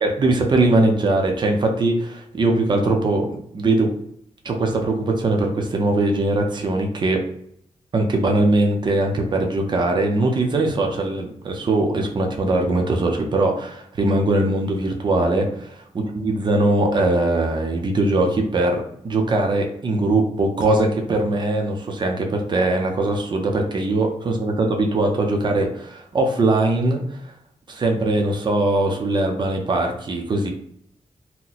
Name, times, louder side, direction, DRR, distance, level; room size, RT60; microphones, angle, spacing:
voice 1, 0.0-3.9 4.4-7.2 7.9-15.8 16.1-27.3 27.7-30.5, right 2 dB, 40° right, 2 dB, 0.6 m, -21 dB
2.9 x 2.1 x 3.9 m, 0.68 s
wide cardioid pair, 165°, 12 cm